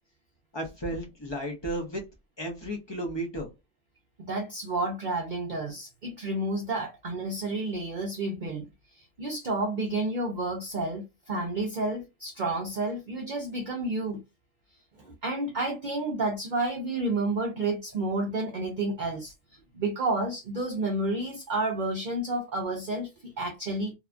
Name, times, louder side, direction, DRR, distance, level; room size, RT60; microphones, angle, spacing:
voice 1, 0.5-2.1 2.4-3.5, right 1 dB, 30° left, 0.5 m, -33 dB
voice 2, 4.2-8.7 8.9-14.2 15.0-19.3 19.7-23.9, right 2 dB, 50° right, 0.6 m, -30 dB
2.8 x 2.3 x 2.4 m
omnidirectional pair, 1.4 m